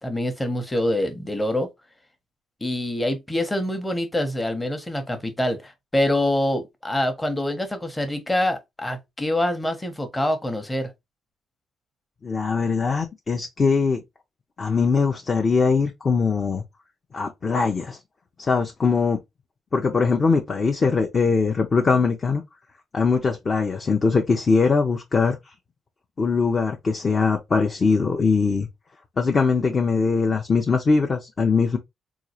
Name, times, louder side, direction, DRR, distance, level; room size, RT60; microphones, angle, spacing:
voice 1, 0.0-1.7 2.6-10.9, left 1 dB, 15° left, 0.9 m, -25 dB
voice 2, 12.2-14.0 14.6-16.6 17.1-18.0 18.4-19.2 19.7-22.4 22.9-25.4 26.2-28.7 29.2-31.8, left 4 dB, 35° left, 0.6 m, -21 dB
3.7 x 2.4 x 2.9 m
cardioid pair, 90°, 0 cm